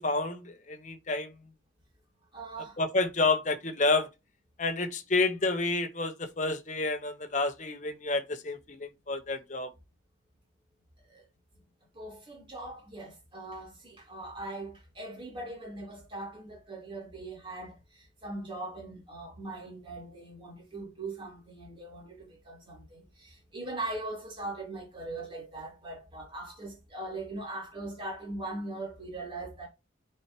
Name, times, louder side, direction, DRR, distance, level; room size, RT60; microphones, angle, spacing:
voice 1, 0.0-1.3 2.8-4.1 4.6-9.7, left 3 dB, 40° left, 1.0 m, -29 dB
voice 2, 2.3-2.8 11.1-11.2 12.0-29.7, right 2 dB, 25° right, 3.4 m, -40 dB
9.9 x 4.6 x 2.9 m
head